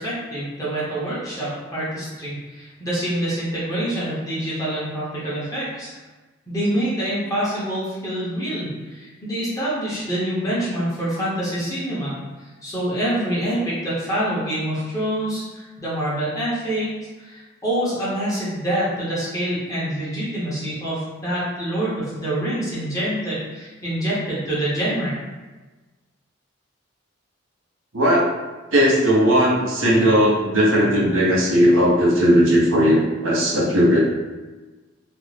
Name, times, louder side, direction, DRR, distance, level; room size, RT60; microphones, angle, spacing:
voice 1, 0.0-5.9 6.5-12.2 12.6-16.9 17.2-25.2, right 1 dB, 15° left, -10 dB, 0.7 m, -26 dB
voice 2, 27.9-28.2 28.7-34.0, equal, 90° right, -4 dB, 0.7 m, -17 dB
2.5 x 2.0 x 3.1 m, 1.2 s
head